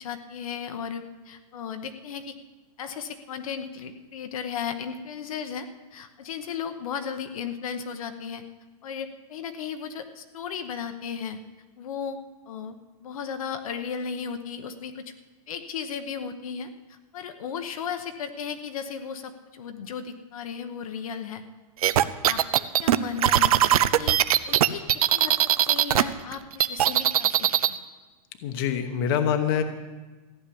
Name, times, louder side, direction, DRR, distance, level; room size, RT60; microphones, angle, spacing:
voice 1, 0.0-2.3 2.8-8.4 8.8-11.4 11.8-12.2 12.5-12.8 13.0-15.1 15.5-21.4 22.0-22.4 22.8-24.8 25.1-25.3 25.6-27.8, left 7 dB, 60° left, 7 dB, 1.0 m, -35 dB
sound 1, 21.8-26.0 26.3-27.7, right 12 dB, 65° right, 0.6 m, -20 dB
voice 2, 28.4-29.6, left 8 dB, 35° left, 7 dB, 1.0 m, -25 dB
15.0 x 6.6 x 10.0 m, 1.2 s
supercardioid pair, 175°, 20 cm